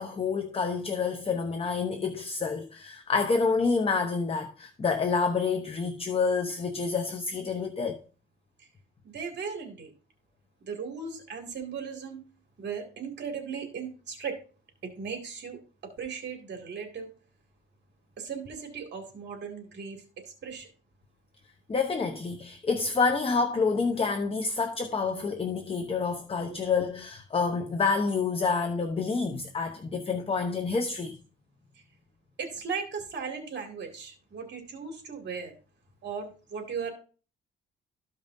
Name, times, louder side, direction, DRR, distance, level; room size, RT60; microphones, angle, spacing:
voice 1, 0.0-8.0 21.7-31.1, left 4 dB, 30° left, 0.9 m, -28 dB
voice 2, 9.0-9.9 10.7-12.2 12.6-14.3 15.0-17.1 18.2-20.7 26.5-26.6 32.4-35.5 36.0-36.9, right 6 dB, 60° right, 2.3 m, -37 dB
14.0 x 5.3 x 2.7 m
cardioid pair, 90°, 20 cm